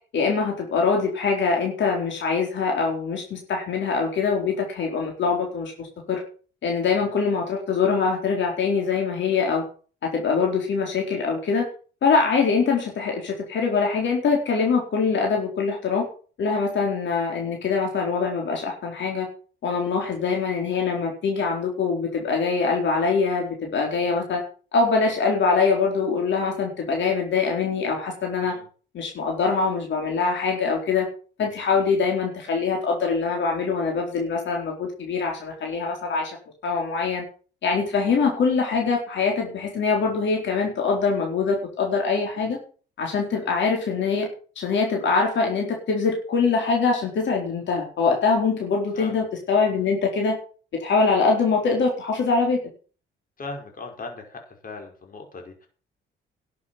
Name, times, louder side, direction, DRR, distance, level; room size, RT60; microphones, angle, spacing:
voice 1, 0.1-6.2 6.6-9.6 10.1-11.7 12.0-16.0 16.4-19.3 19.6-24.4 24.7-28.5 28.9-31.1 31.4-36.4 36.6-37.2 37.6-42.6 43.0-44.3 44.6-50.4 50.8-52.6, left 4 dB, 65° left, 0 dB, 4.4 m, -23 dB
voice 2, 53.4-55.7, left 3 dB, 45° left, 2 dB, 5.1 m, -38 dB
12.0 x 8.5 x 7.6 m, 0.40 s
cardioid pair, 90°, 20 cm